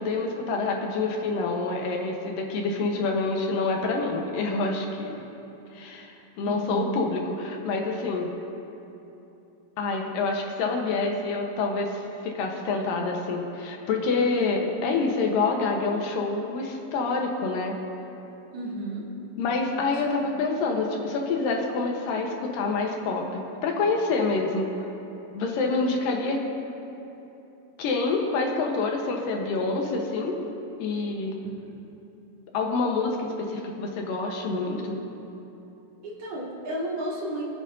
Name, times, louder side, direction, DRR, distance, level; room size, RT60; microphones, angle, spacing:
voice 1, 0.0-5.2 5.7-8.3 9.8-17.7 19.4-24.9 25.3-26.4 27.8-30.4 30.8-31.3 32.5-35.0, left 3 dB, 80° left, 1 dB, 2.7 m, -27 dB
voice 2, 6.4-7.0 18.5-19.0 20.2-20.4 31.7-31.8 36.0-37.4, right 2 dB, 60° right, -6 dB, 3.3 m, -32 dB
25.5 x 9.1 x 2.7 m, 3.0 s
omnidirectional pair, 4.0 m